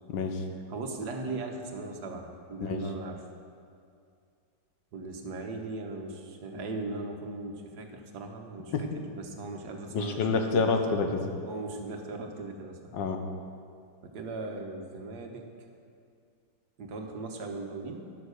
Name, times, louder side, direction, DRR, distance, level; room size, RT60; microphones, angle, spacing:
voice 1, 0.1-0.4 2.6-2.8 8.7-8.9 9.9-11.2 12.9-13.2, left 4 dB, 75° left, 5 dB, 1.6 m, -28 dB
voice 2, 0.7-3.2 4.9-8.9 9.1-10.4 11.3-12.8 14.0-15.5 16.8-18.0, right 3 dB, 65° right, 3 dB, 1.5 m, -38 dB
11.0 x 6.9 x 6.4 m, 2.4 s
omnidirectional pair, 2.0 m